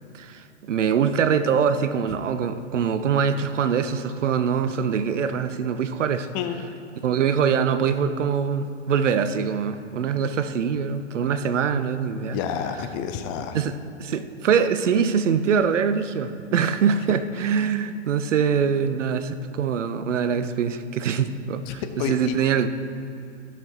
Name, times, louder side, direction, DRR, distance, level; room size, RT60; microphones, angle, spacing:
voice 1, 0.1-6.3 7.0-12.4 13.5-13.7 14.0-22.7, right 7 dB, 80° right, 12 dB, 0.8 m, -23 dB
voice 2, 12.3-13.6 21.7-22.4, left 8 dB, 25° left, 7 dB, 0.5 m, -29 dB
15.5 x 5.9 x 4.6 m, 2.7 s
hypercardioid pair, 135°, 36 cm